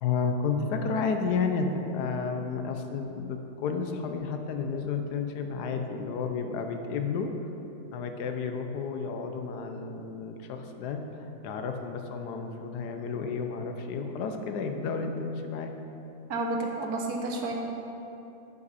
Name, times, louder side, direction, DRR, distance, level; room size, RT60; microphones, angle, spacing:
voice 1, 0.0-7.3 7.9-15.7, left 5 dB, 85° left, 5 dB, 1.2 m, -31 dB
voice 2, 16.3-17.5, right 2 dB, 70° right, 1 dB, 1.4 m, -30 dB
10.5 x 5.4 x 4.0 m, 3.0 s
omnidirectional pair, 1.7 m